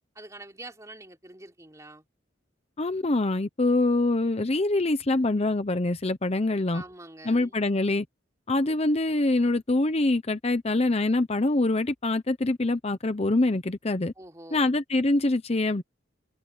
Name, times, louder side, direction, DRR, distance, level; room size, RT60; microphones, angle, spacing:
voice 1, 0.1-2.0 6.7-7.6 14.2-14.7, right 2 dB, 15° right, 3.3 m, -45 dB
voice 2, 2.8-6.8 7.2-8.0 8.5-14.1 14.5-15.8, left 2 dB, 35° left, 0.8 m, -24 dB
head